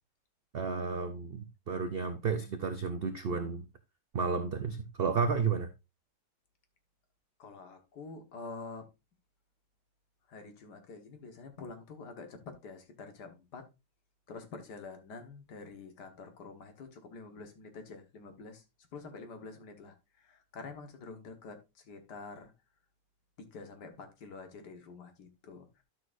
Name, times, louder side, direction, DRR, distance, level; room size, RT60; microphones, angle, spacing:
voice 1, 0.5-3.7 4.1-5.7, right 5 dB, 65° right, 0.5 m, -32 dB
voice 2, 7.4-8.9 10.3-13.7 14.3-18.6 18.9-22.5 23.4-25.8, left 4 dB, 75° left, 1.9 m, -47 dB
11.5 x 6.4 x 2.5 m
omnidirectional pair, 1.8 m